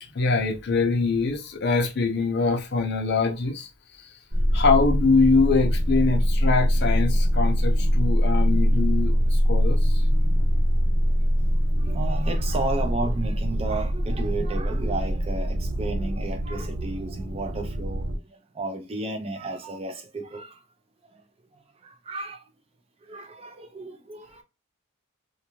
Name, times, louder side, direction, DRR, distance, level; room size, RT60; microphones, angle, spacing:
voice 1, 0.0-3.7 4.0-4.1 4.5-10.0, left 4 dB, 55° left, 0.5 m, -23 dB
sound 1, 4.3-18.2, equal, 70° right, 0.8 m, -23 dB
voice 2, 11.7-20.6 21.8-22.4 23.1-24.4, right 2 dB, 30° right, 0.4 m, -33 dB
2.5 x 2.3 x 2.8 m
head